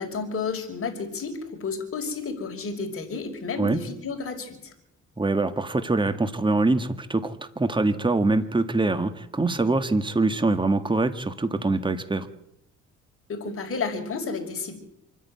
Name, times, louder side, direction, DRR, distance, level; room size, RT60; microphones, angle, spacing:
voice 1, 0.0-4.7 13.3-14.8, left 4 dB, 45° left, 2 dB, 5.3 m, -31 dB
voice 2, 5.2-12.3, right 2 dB, 15° right, 10 dB, 1.7 m, -24 dB
26.5 x 10.0 x 9.6 m, 0.81 s
cardioid pair, 90°, 30 cm